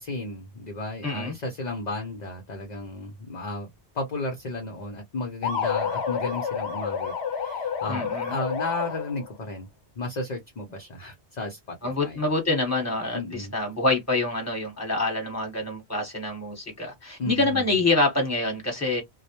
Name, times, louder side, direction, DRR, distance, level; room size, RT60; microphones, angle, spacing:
voice 1, 0.0-9.7 10.0-12.2 13.1-13.5 17.2-17.7, left 2 dB, 45° left, 0.7 m, -34 dB
voice 2, 1.0-1.3 7.9-8.4 11.8-19.0, left 2 dB, 15° left, 1.1 m, -26 dB
sound 1, 5.4-9.3, left 6 dB, 80° left, 0.9 m, -29 dB
2.2 x 2.1 x 2.9 m
omnidirectional pair, 1.1 m